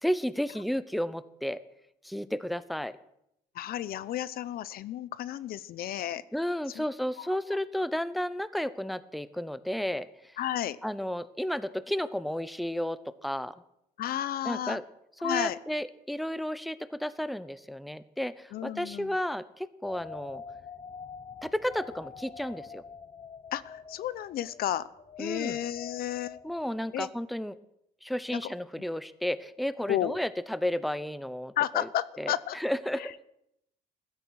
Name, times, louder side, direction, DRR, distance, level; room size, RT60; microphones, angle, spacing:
voice 1, 0.0-1.6 2.0-3.0 6.3-10.1 10.8-13.5 14.4-14.8 15.2-20.4 21.4-22.8 25.2-25.6 26.4-27.6 28.0-31.9 32.2-33.1, equal, ahead, 16 dB, 0.7 m, -32 dB
voice 2, 3.5-6.2 6.8-6.9 7.2-7.3 10.4-10.8 14.0-14.8 15.2-15.6 18.5-19.2 23.5-24.9 25.2-26.4 26.9-27.1 28.3-28.4 29.9-30.1 31.6-32.6 33.0-33.2, left 12 dB, 65° left, 18 dB, 0.8 m, -32 dB
sound 1, 19.8-27.1, left 6 dB, 30° left, 0.7 m, -46 dB
15.5 x 13.0 x 6.4 m, 0.78 s
cardioid pair, 110°, 17 cm